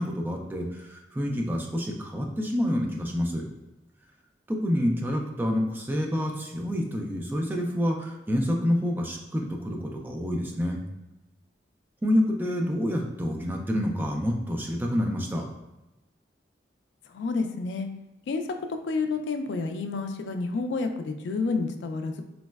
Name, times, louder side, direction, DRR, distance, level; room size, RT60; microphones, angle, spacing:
voice 1, 0.0-3.4 4.5-10.8 12.0-15.4, equal, 10° right, 1 dB, 0.3 m, -28 dB
voice 2, 17.1-17.9 18.3-18.4 18.8-22.2, left 4 dB, 80° left, 6 dB, 0.3 m, -29 dB
3.9 x 2.1 x 2.2 m, 0.96 s
head